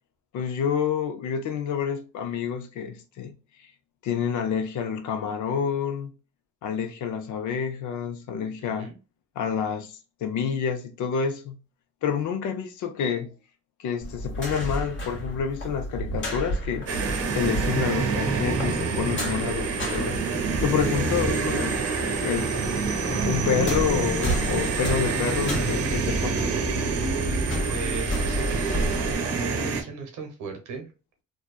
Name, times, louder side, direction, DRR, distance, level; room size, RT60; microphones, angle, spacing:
voice 1, 0.3-3.3 4.0-6.1 6.6-8.9 9.4-11.6 12.0-13.3 13.8-20.2 20.6-22.5 23.3-26.5, left 7 dB, 75° left, 0.7 m, -28 dB
voice 2, 8.6-8.9 19.3-19.6 21.1-21.5 27.7-30.9, right 5 dB, 80° right, 0.9 m, -36 dB
sound 1, 14.0-21.9 22.1-29.1, equal, 40° left, 1.1 m, -32 dB
sound 2, 16.9-29.8, right 4 dB, 55° right, 0.8 m, -27 dB
2.6 x 2.3 x 2.3 m
cardioid pair, 90°, 30 cm